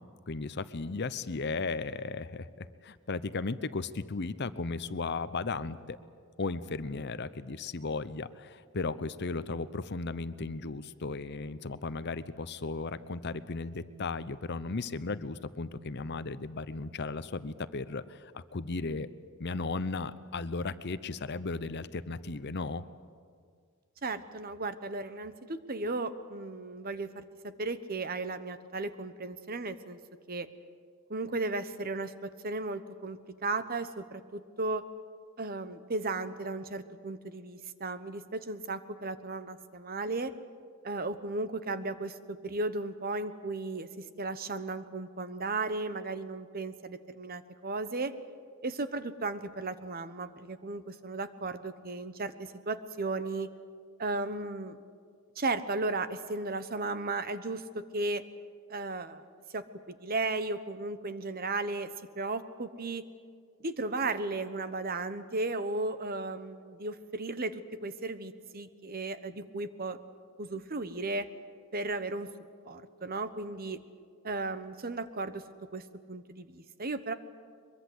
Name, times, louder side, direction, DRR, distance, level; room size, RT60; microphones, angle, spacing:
voice 1, 0.3-6.0 6.4-19.1 19.4-22.8, left 3 dB, 50° left, 14 dB, 0.8 m, -35 dB
voice 2, 24.0-30.0 30.3-30.5 31.1-34.8 35.4-40.3 40.8-48.1 48.6-53.5 54.0-54.8 55.4-58.2 58.7-59.2 59.5-61.9 62.2-63.1 63.6-70.0 70.4-71.3 71.7-72.3 72.7-73.8 74.2-75.4 75.7-77.1, right 3 dB, 45° right, 12 dB, 1.1 m, -35 dB
23.0 x 22.5 x 8.0 m, 2.1 s
head